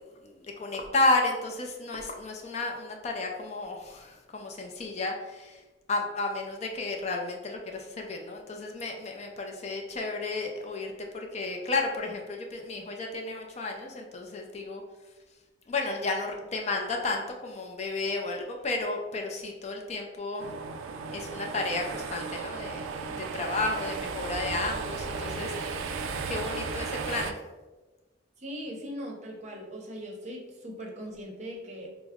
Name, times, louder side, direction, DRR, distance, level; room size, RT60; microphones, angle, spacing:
voice 1, 0.0-5.6 5.9-14.8 15.7-20.5 21.1-22.9 23.2-27.4, left 3 dB, 35° left, 2 dB, 0.4 m, -32 dB
sound 1, 20.4-27.3, right 4 dB, 80° right, 0.3 m, -35 dB
voice 2, 28.4-31.9, equal, 35° right, 0 dB, 0.6 m, -40 dB
4.5 x 2.0 x 3.5 m, 1.2 s
head